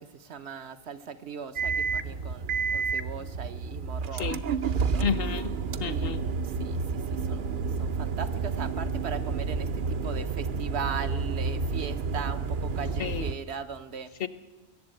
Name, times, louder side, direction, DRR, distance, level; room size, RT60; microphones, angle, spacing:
voice 1, 0.0-5.1 5.8-14.1, right 6 dB, 70° right, 9 dB, 1.1 m, -39 dB
sound 1, 1.6-13.3, right 5 dB, 55° right, 0.7 m, -30 dB
voice 2, 5.0-5.5 5.8-6.2 13.0-13.3 14.2-14.3, left 7 dB, 60° left, 14 dB, 0.9 m, -30 dB
21.0 x 7.4 x 8.9 m, 1.2 s
omnidirectional pair, 1.2 m